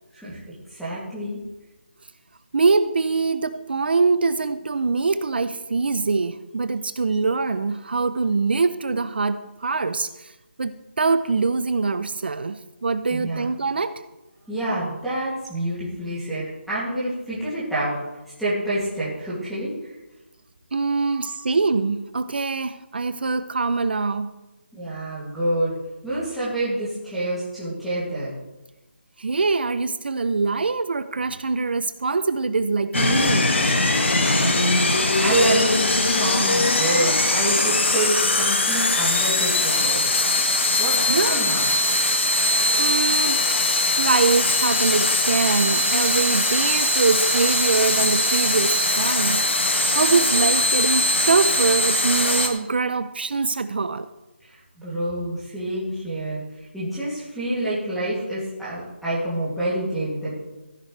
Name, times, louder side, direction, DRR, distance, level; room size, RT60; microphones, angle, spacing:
voice 1, 0.1-1.4 13.1-13.5 14.5-18.0 18.4-19.9 21.0-21.4 24.7-25.8 26.0-28.3 34.2-40.4 40.8-41.7 54.4-56.4 56.7-60.4, right 1 dB, ahead, 2.6 m, -27 dB
voice 2, 2.5-10.3 10.6-14.0 20.7-24.4 29.2-33.6 41.1-41.5 42.4-43.6 44.0-54.1, right 4 dB, 55° right, 0.6 m, -23 dB
sound 1, 32.9-52.5, left 2 dB, 70° left, 2.0 m, -21 dB
15.5 x 11.0 x 3.3 m
figure-of-eight pair, 170°, 6 cm